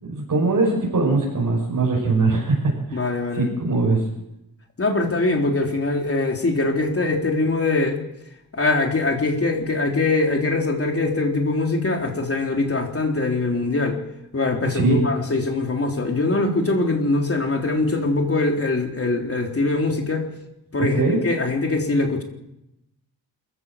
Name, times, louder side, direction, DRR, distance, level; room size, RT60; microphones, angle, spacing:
voice 1, 0.0-4.0 14.7-15.0 21.0-21.2, right 3 dB, 55° right, -2 dB, 6.1 m, -21 dB
voice 2, 2.9-3.5 4.8-8.0 8.5-14.0 14.3-20.3 20.7-21.0 21.2-22.2, left 2 dB, 35° left, 2 dB, 3.8 m, -22 dB
26.5 x 15.5 x 7.5 m, 0.88 s
wide cardioid pair, 155°, 38 cm